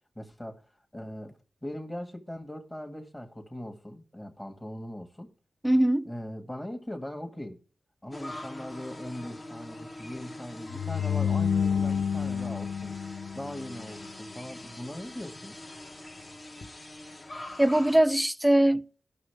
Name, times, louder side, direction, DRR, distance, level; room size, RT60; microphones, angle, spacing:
voice 1, 0.1-0.7 0.9-5.3 6.0-7.6 8.0-13.0 13.3-15.6, left 1 dB, 15° left, 1.6 m, -40 dB
voice 2, 5.6-6.1 17.6-19.1, right 1 dB, 5° right, 0.4 m, -22 dB
sound 1, 8.1-18.0, left 1 dB, 35° left, 1.3 m, -43 dB
sound 2, 10.7-13.9, left 7 dB, 85° left, 0.5 m, -29 dB
16.5 x 6.2 x 3.3 m
wide cardioid pair, 90°, 0 cm